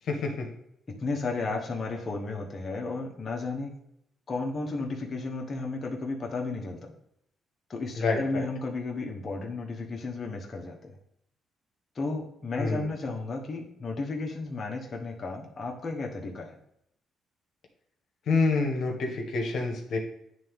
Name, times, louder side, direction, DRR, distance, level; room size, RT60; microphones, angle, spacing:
voice 1, 0.0-0.5 7.9-8.5 12.5-12.9 18.2-20.0, left 3 dB, 65° left, 2 dB, 1.3 m, -27 dB
voice 2, 0.9-3.7 4.3-6.9 7.7-10.9 11.9-16.6, left 3 dB, 35° left, -1 dB, 1.2 m, -33 dB
9.6 x 3.4 x 3.7 m, 0.76 s
cardioid pair, 90°, 0 cm